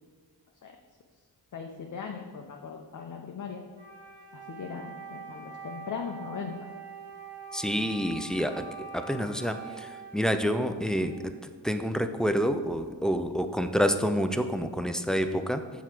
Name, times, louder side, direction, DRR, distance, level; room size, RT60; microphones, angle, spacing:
voice 1, 1.5-3.6 4.3-6.6, left 6 dB, 45° left, 2 dB, 0.6 m, -39 dB
Wind instrument woodwind instrument, 3.7-11.5, right 5 dB, 80° right, 1.4 m, -45 dB
voice 2, 7.5-11.3 11.6-15.6, equal, ahead, 8 dB, 0.3 m, -28 dB
5.9 x 4.7 x 4.4 m, 1.5 s
cardioid pair, 60°, 43 cm